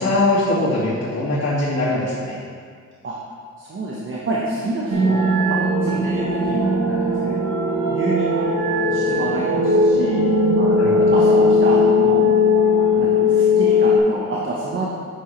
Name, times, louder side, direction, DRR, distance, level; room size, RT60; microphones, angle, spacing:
voice 1, 0.0-2.4 10.8-11.2, left 2 dB, 45° left, -10 dB, 2.3 m, -21 dB
voice 2, 3.6-7.4 7.9-8.5 8.9-10.2 10.6-12.2 12.7-14.9, right 2 dB, 40° right, -5 dB, 1.3 m, -28 dB
sound 1, 4.9-14.0, left 2 dB, 65° right, 2.0 m, -18 dB
9.2 x 7.6 x 3.4 m, 2.1 s
cardioid pair, 90°, 30 cm